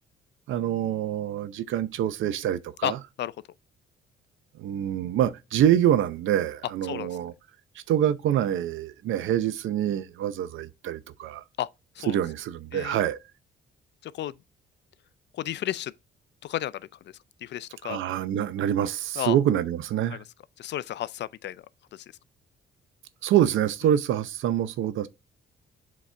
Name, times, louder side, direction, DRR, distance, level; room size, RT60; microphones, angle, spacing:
voice 1, 0.5-3.0 4.6-7.3 7.9-11.4 12.1-13.2 17.8-20.2 23.2-25.1, right 10 dB, 80° right, 0.7 m, -25 dB
voice 2, 2.8-3.3 6.8-7.1 11.6-11.7 12.0-12.2 12.7-13.0 14.0-14.3 15.3-15.9 16.4-16.9 17.4-18.0 19.2-19.4 20.1-20.2 20.6-21.6 21.9-22.1, left 12 dB, 60° left, 0.5 m, -32 dB
7.5 x 4.1 x 3.3 m
cardioid pair, 90°, 20 cm